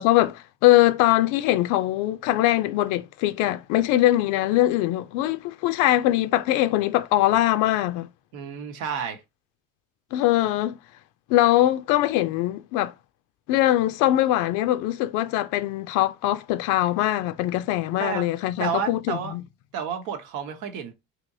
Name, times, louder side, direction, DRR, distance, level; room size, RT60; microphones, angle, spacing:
voice 1, 0.0-8.1 10.1-10.8 11.3-12.9 13.5-19.4, left 15 dB, 80° left, 0.5 m, -22 dB
voice 2, 8.3-9.2 18.0-18.3 18.6-19.3 19.7-20.9, right 7 dB, 75° right, 0.9 m, -30 dB
3.4 x 2.9 x 2.6 m
cardioid pair, 110°, 31 cm